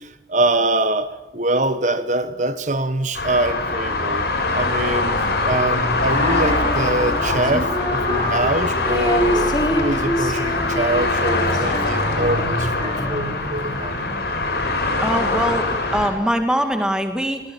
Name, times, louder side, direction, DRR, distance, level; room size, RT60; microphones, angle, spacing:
voice 1, 0.0-4.3 4.5-5.2 5.4-14.2, right 2 dB, 45° right, 1.3 m, -24 dB
sound 1, 3.1-16.1, left 2 dB, 65° left, 7.0 m, -22 dB
Female singing, 6.0-13.4, equal, 25° left, 3.3 m, -26 dB
voice 2, 15.0-17.4, equal, 5° right, 2.2 m, -22 dB
24.5 x 18.0 x 9.0 m
head